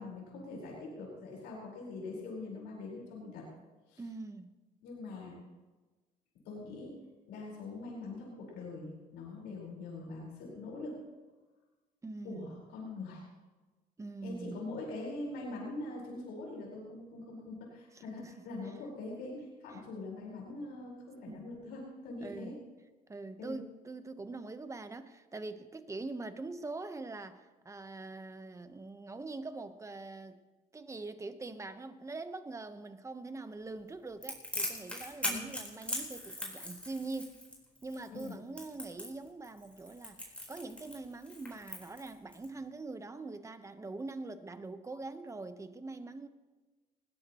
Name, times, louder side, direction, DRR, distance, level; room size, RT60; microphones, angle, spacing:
voice 1, 0.0-3.5 3.9-4.0 4.8-5.4 6.4-6.9 7.3-11.0 12.2-13.2 14.2-22.5 23.4-23.6 35.2-35.4 38.1-38.4, left 2 dB, 85° left, -3 dB, 4.6 m, -43 dB
voice 2, 4.0-4.5 12.0-12.6 14.0-14.6 17.9-18.4 19.7-19.8 21.3-21.4 22.2-22.5 23.1-30.4 30.7-37.4 37.8-46.3, right 3 dB, 15° right, 10 dB, 1.0 m, -43 dB
Crackle, 34.2-42.5, left 1 dB, 5° left, 4.2 m, -40 dB
19.5 x 16.5 x 3.0 m, 1.3 s
cardioid pair, 110°, 17 cm